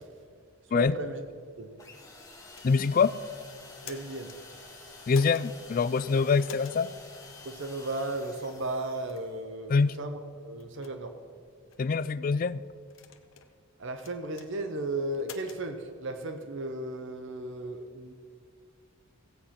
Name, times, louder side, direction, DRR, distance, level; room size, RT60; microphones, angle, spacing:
voice 1, 0.7-1.2 1.6-1.7 3.8-4.3 6.2-6.3 7.4-11.1 13.8-18.1, right 2 dB, 60° right, 7 dB, 0.9 m, -35 dB
sound 1, 1.8-9.4, left 3 dB, 15° left, 1.6 m, -49 dB
sound 2, 2.5-3.0 3.6-4.4 5.1-5.5 6.4-6.8 7.6-7.7 8.3-8.5 9.1-9.3 9.9-10.0 10.6-10.9 11.7-12.1 12.9-13.5 14.0-14.5 15.2-15.6, left 6 dB, 60° left, 0.9 m, -47 dB
voice 2, 2.6-3.1 5.1-6.9 9.7-9.9 11.8-12.6, left 5 dB, 40° left, 16 dB, 0.3 m, -24 dB
16.0 x 8.1 x 5.8 m, 2.1 s
head